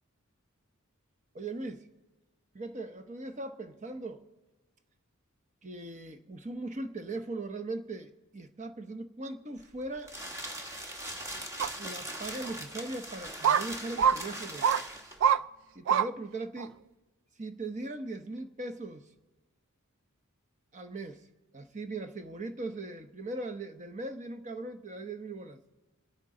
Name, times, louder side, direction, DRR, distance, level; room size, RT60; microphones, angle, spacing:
voice 1, 1.3-1.9 2.5-4.2 5.6-10.2 11.8-14.7 15.7-16.8 17.4-19.1 20.7-21.2 21.5-25.6, right 2 dB, 35° right, 0.9 m, -39 dB
sound 1, 9.6-15.3, equal, 15° right, 1.2 m, -40 dB
sound 2, 11.6-11.7 12.4-12.5 13.4-13.6 14.0-14.2 14.6-14.8 15.2-15.4 15.9-16.1 16.6-16.7, right 8 dB, 60° right, 0.3 m, -24 dB
26.5 x 9.1 x 3.8 m
head